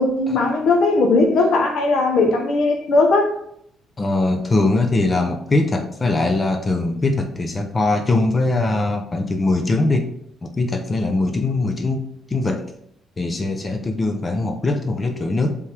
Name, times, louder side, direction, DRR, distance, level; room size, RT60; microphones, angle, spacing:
voice 1, 0.0-3.3, left 3 dB, 75° left, 3 dB, 0.9 m, -18 dB
voice 2, 4.0-10.1 10.4-12.0 12.3-12.6 13.2-15.6, left 2 dB, 30° left, 5 dB, 0.6 m, -21 dB
4.6 x 3.5 x 3.3 m, 0.70 s
cardioid pair, 90°, 0 cm